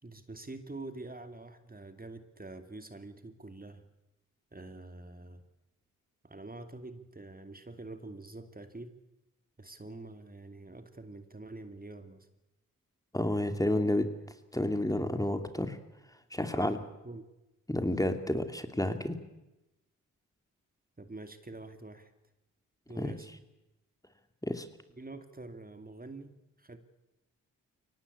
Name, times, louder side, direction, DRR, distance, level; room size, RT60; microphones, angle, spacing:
voice 1, 0.0-3.8 4.5-5.4 6.2-8.9 9.6-12.3 16.4-17.2 21.0-22.1 22.9-23.3 25.0-26.8, right 2 dB, 25° right, 8 dB, 2.6 m, -46 dB
voice 2, 13.1-14.1 14.5-15.8 16.3-16.8 17.7-19.2 23.0-23.2 24.4-24.7, left 1 dB, 10° left, 8 dB, 2.8 m, -30 dB
23.0 x 18.5 x 8.5 m, 0.98 s
supercardioid pair, 45°, 35 cm